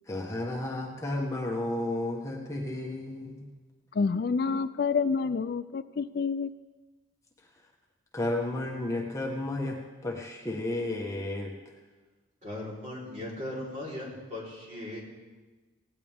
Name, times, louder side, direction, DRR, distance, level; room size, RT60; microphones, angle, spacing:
voice 1, 0.1-3.5 4.5-4.6 8.1-11.5, left 1 dB, 15° left, 0 dB, 1.3 m, -32 dB
voice 2, 4.0-6.5, left 5 dB, 50° left, 13 dB, 0.3 m, -28 dB
voice 3, 12.4-15.0, left 1 dB, 35° right, -4 dB, 3.9 m, -38 dB
18.0 x 17.5 x 3.5 m, 1.3 s
head